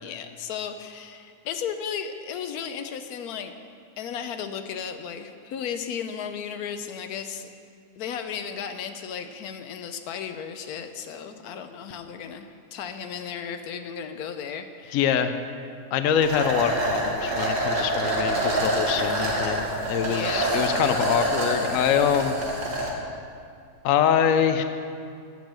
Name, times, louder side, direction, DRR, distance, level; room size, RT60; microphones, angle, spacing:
voice 1, 0.0-3.6 4.0-7.5 8.0-15.2 20.0-20.7, left 7 dB, 90° left, 8 dB, 1.2 m, -35 dB
voice 2, 14.9-15.3 15.9-22.3 23.8-24.6, left 8 dB, 70° left, 9 dB, 1.0 m, -24 dB
sound 1, 16.2-22.9, right 1 dB, 60° right, 2.0 m, -26 dB
9.2 x 7.0 x 7.5 m, 2.3 s
omnidirectional pair, 1.5 m